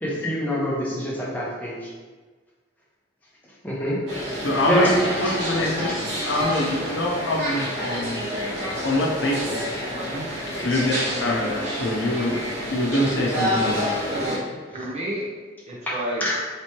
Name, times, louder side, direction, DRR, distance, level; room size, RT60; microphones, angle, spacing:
voice 1, 0.0-1.9 3.6-4.0 4.7-5.4 5.8-6.0 15.9-16.4, equal, 10° left, -6 dB, 0.7 m, -26 dB
sound 1, 4.1-14.4, equal, 55° right, 1.2 m, -28 dB
voice 2, 4.4-8.2 8.8-9.8 10.6-11.5 11.7-12.4 12.7-13.9, left 1 dB, 65° left, -1 dB, 0.6 m, -25 dB
voice 3, 9.9-10.3 14.1-15.2 15.7-16.2, right 1 dB, 35° right, -4 dB, 0.6 m, -31 dB
3.3 x 3.0 x 2.9 m, 1.4 s
head